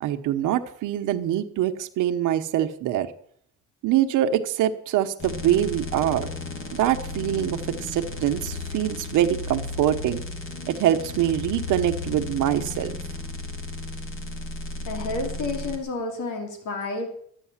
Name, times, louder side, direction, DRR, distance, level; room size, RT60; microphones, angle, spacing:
voice 1, 0.0-3.1 3.8-6.3 6.7-10.2 10.6-12.9, right 11 dB, 90° right, 7 dB, 1.1 m, -24 dB
sound 1, 5.2-15.8, left 3 dB, 45° left, 2.8 m, -34 dB
voice 2, 14.8-17.1, left 3 dB, 85° left, 2 dB, 2.8 m, -30 dB
12.5 x 9.1 x 7.3 m, 0.63 s
cardioid pair, 90°, 30 cm